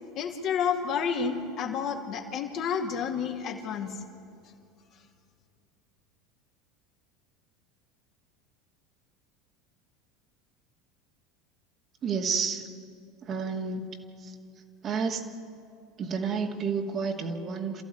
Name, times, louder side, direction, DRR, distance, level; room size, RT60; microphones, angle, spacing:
voice 1, 0.1-4.0, left 6 dB, 45° left, 2 dB, 2.5 m, -30 dB
voice 2, 12.0-12.6 13.3-13.8 14.8-15.2 16.0-17.8, right 5 dB, 40° right, 2 dB, 2.4 m, -30 dB
27.5 x 15.0 x 9.2 m, 2.5 s
figure-of-eight pair, 75°, 0 cm